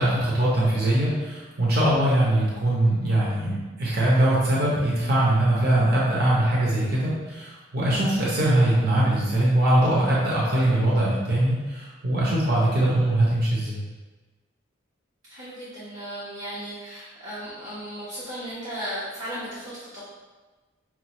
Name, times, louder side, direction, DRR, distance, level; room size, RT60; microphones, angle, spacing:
voice 1, 0.0-13.8, right 1 dB, 50° right, -6 dB, 0.8 m, -22 dB
voice 2, 15.3-20.0, equal, 85° right, -12 dB, 1.3 m, -36 dB
5.8 x 2.4 x 3.0 m, 1.2 s
head